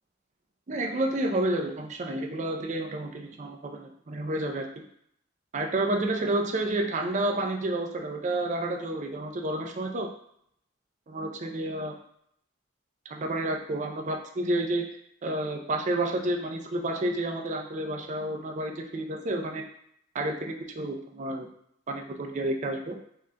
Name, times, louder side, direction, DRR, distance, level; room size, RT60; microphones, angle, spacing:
voice 1, 0.7-4.8 5.5-10.1 11.1-11.9 13.1-14.9 15.2-19.6 20.1-21.5 21.9-23.0, right 1 dB, 40° right, 3 dB, 0.4 m, -30 dB
3.7 x 3.6 x 2.2 m, 0.70 s
head